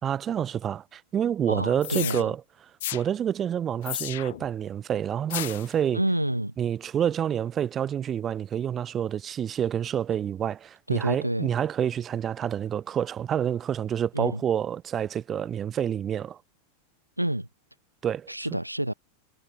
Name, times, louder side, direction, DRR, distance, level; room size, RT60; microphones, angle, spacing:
voice 1, 0.0-2.4 2.9-6.0 6.6-16.4 18.0-18.3, right 9 dB, 25° right, 3.0 m, -28 dB
voice 2, 1.5-2.3 5.9-6.5 10.9-11.5 14.1-14.4 17.2-17.5 18.3-18.9, right 1 dB, 85° right, 4.8 m, -28 dB
sound 1, 1.8-2.2 2.8-3.0 3.8-4.5 5.3-5.7, left 14 dB, 55° left, 2.0 m, -33 dB
figure-of-eight pair, 90°, 0 cm